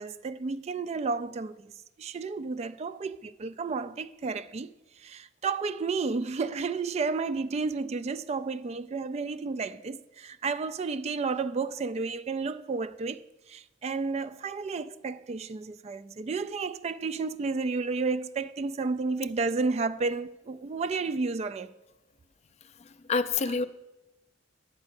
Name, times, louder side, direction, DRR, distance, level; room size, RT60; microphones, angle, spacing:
voice 1, 0.0-1.7 2.0-4.7 5.0-21.7, right 4 dB, 35° right, 0.3 m, -32 dB
voice 2, 22.8-23.7, left 4 dB, 35° left, 0.4 m, -28 dB
10.5 x 5.2 x 8.0 m
head